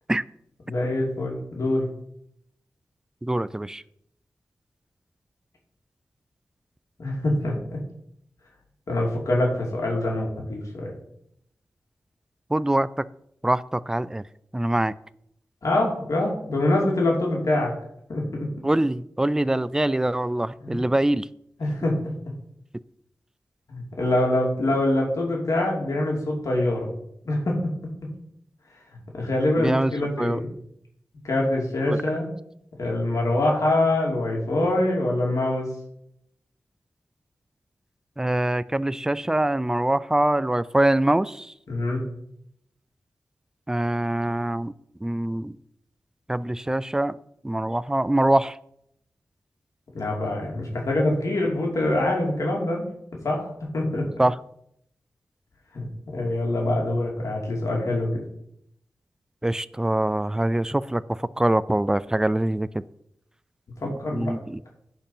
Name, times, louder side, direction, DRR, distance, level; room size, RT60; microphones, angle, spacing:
voice 1, 0.7-1.9 7.0-7.8 8.9-10.9 15.6-17.7 18.1-18.5 20.6-20.8 21.6-22.0 23.7-26.9 27.2-27.7 29.1-30.5 31.2-32.3 32.8-35.7 41.7-42.0 49.9-52.9 53.2-54.1 55.7-58.2 63.8-64.4, left 1 dB, 65° left, -2 dB, 2.5 m, -24 dB
voice 2, 3.2-3.8 12.5-13.1 13.4-14.2 14.5-15.0 18.6-21.3 29.6-30.4 31.9-32.0 38.2-41.5 43.7-44.7 45.0-45.6 46.3-47.2 47.4-48.6 54.2-54.3 59.4-62.7 64.1-64.6, right 1 dB, 10° right, 18 dB, 0.3 m, -24 dB
10.5 x 4.5 x 5.6 m, 0.73 s
wide cardioid pair, 90°, 6 cm